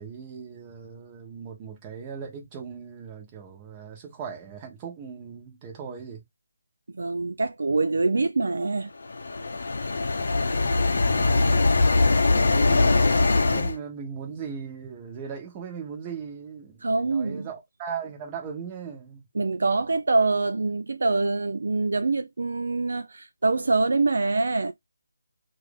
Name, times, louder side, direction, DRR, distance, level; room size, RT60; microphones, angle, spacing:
voice 1, 0.0-6.2 12.2-19.2, right 6 dB, 20° right, 1.1 m, -38 dB
voice 2, 6.9-8.9 16.8-17.5 19.3-24.7, right 3 dB, 65° right, 0.4 m, -25 dB
sound 1, 9.1-13.7, left 3 dB, 60° left, 0.6 m, -21 dB
3.1 x 2.5 x 3.5 m
figure-of-eight pair, 155°, 0 cm